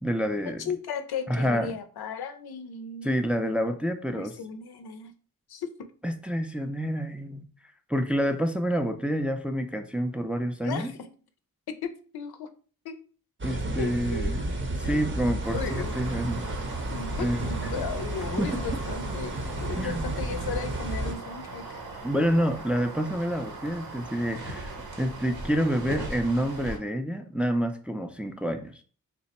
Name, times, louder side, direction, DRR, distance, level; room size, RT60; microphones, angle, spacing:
voice 1, 0.0-0.7 1.3-1.7 3.0-4.3 6.0-7.5 7.9-10.9 13.4-14.5 14.8-16.5 17.2-17.6 18.4-18.6 19.8-20.1 22.0-28.8, equal, 5° right, 5 dB, 0.4 m, -28 dB
voice 2, 0.6-3.4 4.1-5.1 5.5-5.7 10.6-11.1 12.1-12.5 12.8-13.0 13.8-14.4 14.8-15.3 15.5-16.0 16.9-21.8, left 5 dB, 75° left, 9 dB, 0.5 m, -36 dB
sound 1, 13.4-21.1, right 1 dB, 30° right, 0.7 m, -32 dB
sound 2, 15.4-26.8, right 2 dB, 75° right, 1.0 m, -39 dB
3.2 x 2.1 x 4.0 m, 0.42 s
cardioid pair, 55°, 38 cm